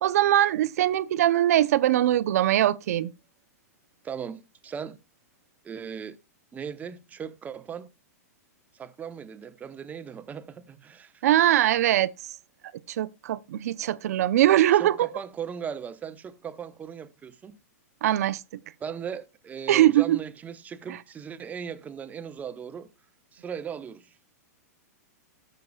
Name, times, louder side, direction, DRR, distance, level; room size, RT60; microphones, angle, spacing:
voice 1, 0.0-3.1 11.2-12.1 12.9-15.1 18.0-18.4 19.7-20.2, right 13 dB, 65° right, 0.7 m, -21 dB
voice 2, 4.0-5.0 5.6-6.2 6.5-7.9 8.7-11.2 14.7-17.6 18.8-22.9 23.3-24.1, right 7 dB, 15° right, 0.9 m, -38 dB
17.5 x 6.6 x 2.3 m
hypercardioid pair, 130°, 9 cm